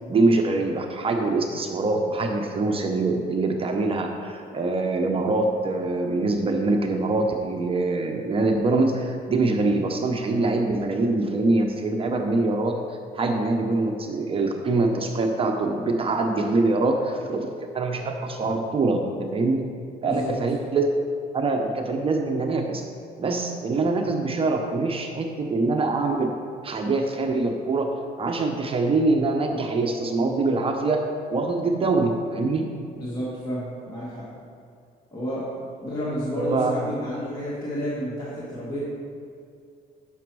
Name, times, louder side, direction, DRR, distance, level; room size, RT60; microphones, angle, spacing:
voice 1, 0.1-12.7 13.1-19.7 20.0-20.9 21.3-22.8 23.2-26.3 26.6-32.7 36.4-36.7, right 3 dB, 35° right, 3 dB, 0.7 m, -24 dB
voice 2, 33.0-34.2 35.1-35.5 35.8-38.8, equal, 20° left, -8 dB, 1.6 m, -30 dB
7.1 x 6.1 x 4.6 m, 2.4 s
cardioid pair, 110°, 17 cm